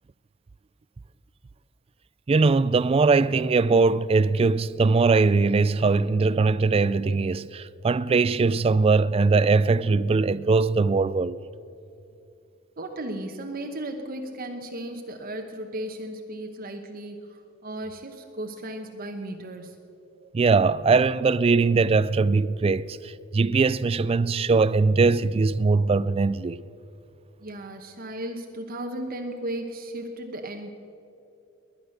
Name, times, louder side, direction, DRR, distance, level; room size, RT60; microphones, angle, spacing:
voice 1, 2.3-11.4 20.3-26.6, right 4 dB, 25° right, 0.3 m, -21 dB
voice 2, 12.8-19.8 27.4-30.7, right 1 dB, 45° right, 1.1 m, -35 dB
20.5 x 10.0 x 6.6 m
head